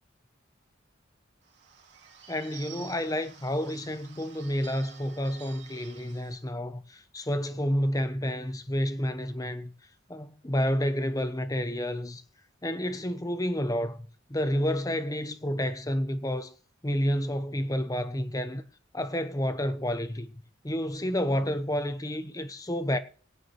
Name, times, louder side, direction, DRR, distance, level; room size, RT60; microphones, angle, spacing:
Bird / Bell, 1.4-6.4, right 8 dB, 60° right, 3.1 m, -50 dB
voice 1, 2.3-9.7 10.1-12.2 12.6-16.5 16.8-18.6 18.9-20.3 20.6-23.0, equal, 15° left, 0.8 m, -30 dB
18.5 x 9.3 x 3.3 m
head